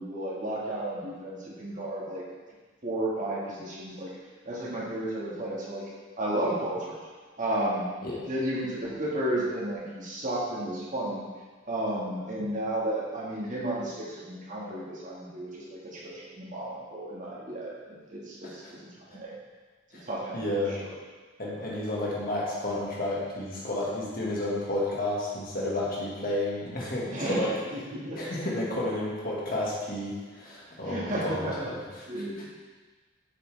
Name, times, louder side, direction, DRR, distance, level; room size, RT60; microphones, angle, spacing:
voice 1, 0.0-2.2 2.8-4.1 4.5-5.8 6.2-7.0 7.4-7.9 8.3-11.2 11.7-17.7 18.1-18.6 19.1-19.3 20.1-20.4 21.6-21.7 27.1-27.4 27.7-28.2 30.8-31.7 32.1-32.5, right 1 dB, 40° right, -5 dB, 1.7 m, -32 dB
voice 2, 20.3-20.8 21.4-27.6 28.2-32.2, left 1 dB, 45° left, -5 dB, 1.7 m, -31 dB
8.0 x 6.9 x 3.4 m, 1.4 s
head